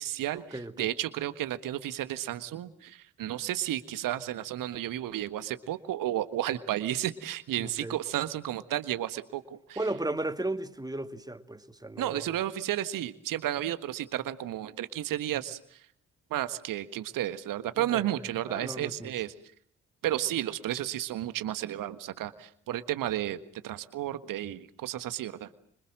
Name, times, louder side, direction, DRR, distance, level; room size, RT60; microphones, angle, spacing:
voice 1, 0.0-9.8 12.0-15.8 16.3-19.3 20.0-25.6, right 13 dB, 60° right, 13 dB, 1.6 m, -32 dB
voice 2, 0.5-0.9 7.6-8.0 9.8-12.2 17.8-18.1 18.5-19.1, right 2 dB, 10° right, 10 dB, 2.5 m, -35 dB
26.0 x 25.5 x 7.6 m, 0.62 s
figure-of-eight pair, 40°, 37 cm